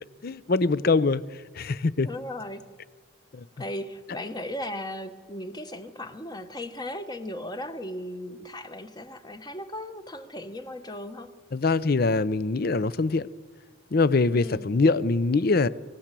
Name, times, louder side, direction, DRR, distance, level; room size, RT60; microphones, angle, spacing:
voice 1, 0.2-2.1 3.3-3.4 11.5-13.3 13.9-15.7, left 3 dB, 45° left, 0.5 m, -23 dB
voice 2, 2.0-2.6 3.6-11.3 14.3-14.7, left 1 dB, 20° left, 1.0 m, -37 dB
25.5 x 16.0 x 7.5 m
head